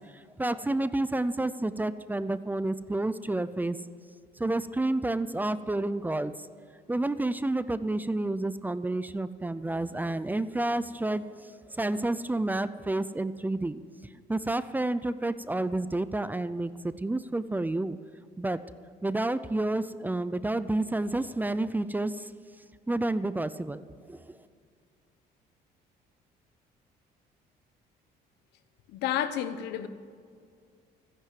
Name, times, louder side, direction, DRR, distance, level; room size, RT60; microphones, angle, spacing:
voice 1, 0.1-3.8 4.4-6.3 6.9-13.8 14.3-18.0 18.4-18.6 19.0-22.3 22.9-24.3, right 2 dB, 10° right, 14 dB, 0.5 m, -30 dB
voice 2, 28.9-29.9, left 10 dB, 85° left, 11 dB, 1.1 m, -30 dB
14.0 x 10.5 x 7.6 m, 2.2 s
cardioid pair, 110°, 17 cm